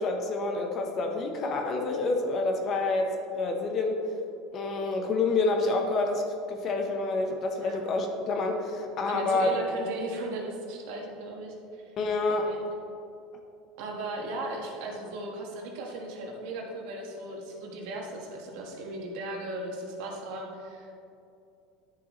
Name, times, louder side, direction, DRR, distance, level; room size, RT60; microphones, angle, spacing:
voice 1, 0.0-4.0 4.5-9.6 12.0-12.5, left 3 dB, 35° left, 3 dB, 1.0 m, -28 dB
voice 2, 9.1-11.9 12.3-12.6 13.8-20.9, right 2 dB, 70° right, 0 dB, 1.6 m, -37 dB
10.5 x 6.8 x 3.2 m, 2.6 s
supercardioid pair, 145°, 0 cm